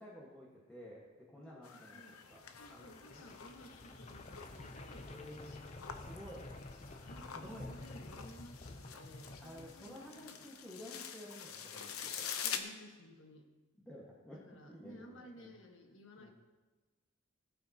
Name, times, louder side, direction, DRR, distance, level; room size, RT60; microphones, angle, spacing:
voice 1, 0.0-3.2 5.0-6.5 7.3-7.7 9.4-12.3 13.8-15.5 16.2-16.3, equal, 5° left, -6 dB, 1.6 m, -52 dB
voice 2, 1.4-2.2 2.6-6.0 7.0-10.4 12.4-13.5 14.3-16.3, left 1 dB, 65° left, 3 dB, 1.4 m, -56 dB
sound 1, 1.6-12.6, left 8 dB, 85° left, 0.9 m, -47 dB
sound 2, 2.2-10.2, left 2 dB, 30° left, 0.6 m, -51 dB
18.5 x 8.8 x 2.9 m, 1.2 s
head